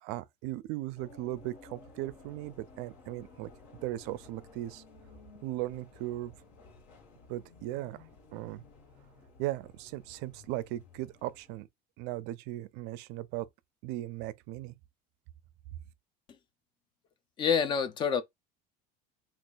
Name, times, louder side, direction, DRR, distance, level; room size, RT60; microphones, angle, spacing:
voice 1, 0.0-3.5 3.8-4.8 5.4-6.3 7.3-8.0 8.3-8.6 9.4-11.7 12.0-13.5 13.8-14.7, right 16 dB, 60° right, 0.4 m, -37 dB
sound 1, 1.0-11.6, left 3 dB, 55° left, 1.2 m, -55 dB
voice 2, 17.4-18.2, left 6 dB, 25° left, 0.3 m, -27 dB
3.1 x 2.4 x 3.8 m
cardioid pair, 170°, 20 cm